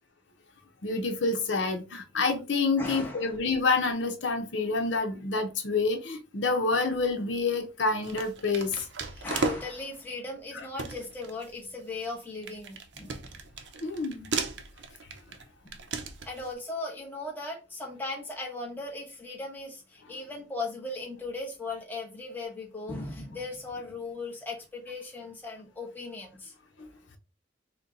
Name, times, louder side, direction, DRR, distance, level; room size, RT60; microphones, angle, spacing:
voice 1, 0.8-8.7 13.8-14.3, left 3 dB, 75° left, 0.8 m, -28 dB
voice 2, 2.8-3.4 9.1-13.4 15.6-15.8 16.2-26.5, left 3 dB, 10° left, 1.1 m, -38 dB
sound 1, 6.9-7.3 8.0-9.9 10.4-10.5 10.8-16.5, right 4 dB, 70° right, 0.7 m, -36 dB
4.3 x 2.2 x 3.7 m
head